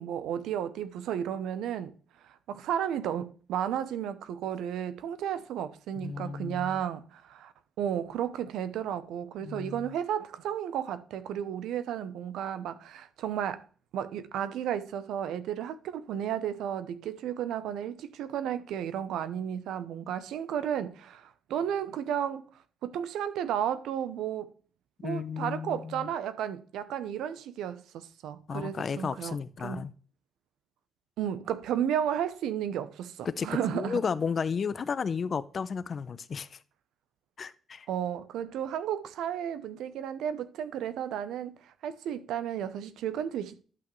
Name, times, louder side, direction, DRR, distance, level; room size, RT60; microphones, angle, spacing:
voice 1, 0.0-1.9 2.5-7.5 7.8-13.6 13.9-22.4 22.8-24.5 25.0-29.4 29.6-29.8 31.2-34.0 37.9-43.6, right 9 dB, 85° right, 0.7 m, -33 dB
voice 2, 6.0-6.8 9.4-9.9 25.0-26.1 28.5-29.9 33.2-36.6 37.4-37.9, left 6 dB, 50° left, 0.6 m, -33 dB
11.0 x 5.9 x 3.2 m
cardioid pair, 75°, 0 cm